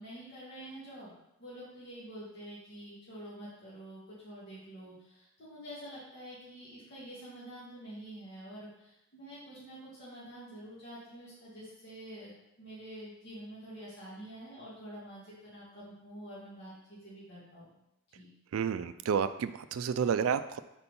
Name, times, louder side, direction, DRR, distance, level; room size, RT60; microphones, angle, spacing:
voice 1, 0.0-12.3 12.6-17.7 18.1-18.3, right 1 dB, 50° left, -9 dB, 1.9 m, -47 dB
voice 2, 18.5-20.6, right 7 dB, 65° right, 11 dB, 0.3 m, -30 dB
4.5 x 4.3 x 5.3 m, 0.87 s
head